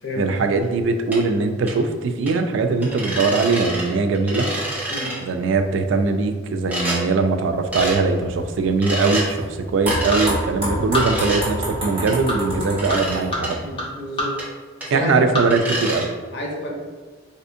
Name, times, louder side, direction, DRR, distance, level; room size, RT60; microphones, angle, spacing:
voice 1, 0.2-4.5 5.2-9.5 9.7-13.6 14.9-16.1, right 4 dB, 85° right, 7 dB, 0.3 m, -21 dB
sound 1, 1.1-1.2 1.7-1.8 2.3-2.4 2.8-3.9 4.1-5.2 6.7-7.0 7.7-8.0 8.8-9.3 9.9-10.3 11.0-11.4 12.1-12.2 12.8-13.2 13.4-13.5 14.4-14.5 14.8-14.9 15.5-16.0, right 1 dB, 10° right, 0.8 m, -27 dB
sound 2, 5.3-15.6, left 1 dB, 25° left, 0.8 m, -33 dB
sound 3, 7.6-13.7, equal, 30° right, 1.5 m, -29 dB
voice 2, 13.6-14.4 14.8-15.3 16.3-16.7, left 1 dB, 65° left, -2 dB, 0.8 m, -29 dB
4.1 x 2.6 x 2.5 m, 1.5 s
head